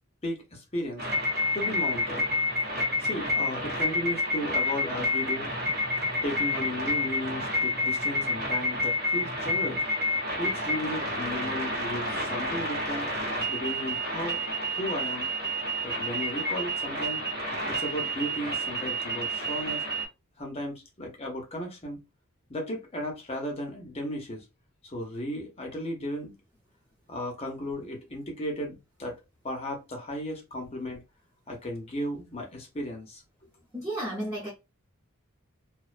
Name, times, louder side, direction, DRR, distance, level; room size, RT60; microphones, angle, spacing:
voice 1, 0.2-1.1 1.5-2.3 3.0-5.5 6.2-9.8 10.4-13.1 13.5-15.3 15.8-17.2 17.7-19.8 20.4-22.0 22.5-24.4 24.8-26.3 27.1-29.2 29.4-31.0 31.5-33.2, equal, 25° left, 0.6 m, -35 dB
sound 1, 1.0-20.1, left 1 dB, 45° right, 0.9 m, -29 dB
voice 2, 33.7-34.5, right 1 dB, 15° right, 0.7 m, -32 dB
2.4 x 2.1 x 2.4 m
head